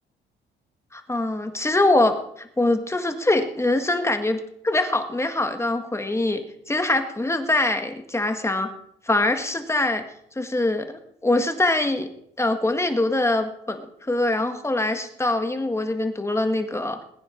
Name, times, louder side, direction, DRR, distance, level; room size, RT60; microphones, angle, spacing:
voice 1, 0.9-6.4 6.7-8.7 9.1-10.0 10.4-10.9 11.2-12.1 12.4-17.0, left 2 dB, 15° left, 6 dB, 1.8 m, -23 dB
21.0 x 9.4 x 4.5 m, 0.71 s
cardioid pair, 90°, 20 cm